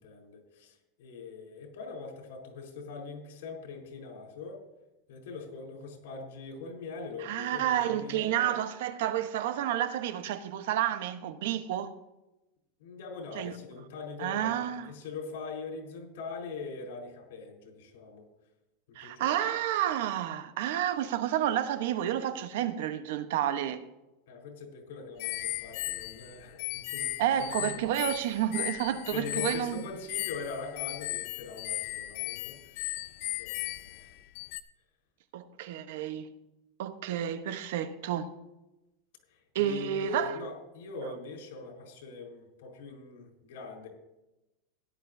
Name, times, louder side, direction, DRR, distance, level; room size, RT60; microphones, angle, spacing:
voice 1, 0.0-4.6 5.1-8.5 12.8-18.3 19.0-19.6 24.3-27.1 27.4-27.8 29.1-33.0 33.4-33.7 33.9-34.1 39.3-43.9, left 4 dB, 85° left, 4.3 m, -42 dB
voice 2, 7.2-11.9 13.4-13.6 14.2-14.9 19.0-23.8 27.2-29.7 35.3-36.3 36.8-38.3 39.5-40.4 41.0-41.1, right 11 dB, 70° right, 1.0 m, -30 dB
sound 1, 25.2-34.6, left 16 dB, 55° left, 0.6 m, -37 dB
17.0 x 12.0 x 2.7 m
supercardioid pair, 165°, 0 cm